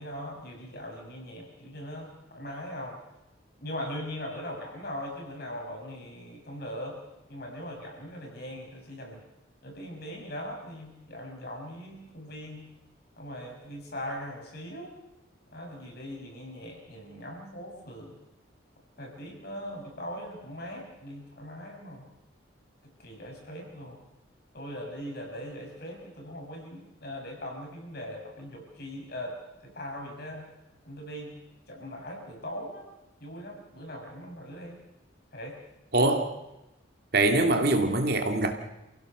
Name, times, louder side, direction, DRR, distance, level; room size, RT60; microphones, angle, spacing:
voice 1, 0.0-3.0 3.6-7.0 7.3-9.2 9.6-12.7 13.2-15.0 15.5-18.2 19.0-22.1 23.0-24.1 24.5-30.5 30.8-31.3 31.7-32.8 33.2-34.8 35.3-35.6, equal, 50° left, 6.5 m, -40 dB
voice 2, 35.9-36.3 37.1-38.5, right 2 dB, 50° right, 2.4 m, -23 dB
29.0 x 16.0 x 6.8 m
head